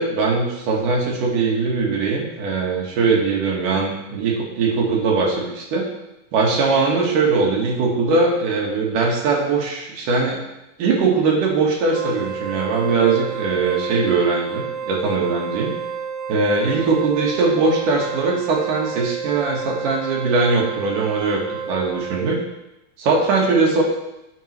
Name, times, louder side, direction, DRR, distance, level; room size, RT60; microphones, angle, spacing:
voice 1, 0.0-5.9 6.3-10.4 10.8-15.7 16.3-22.4 23.0-23.8, right 4 dB, 65° right, -2 dB, 2.8 m, -20 dB
Wind instrument woodwind instrument, 11.9-22.5, right 6 dB, 85° right, 2.8 m, -30 dB
10.0 x 6.1 x 3.2 m, 0.91 s
omnidirectional pair, 4.5 m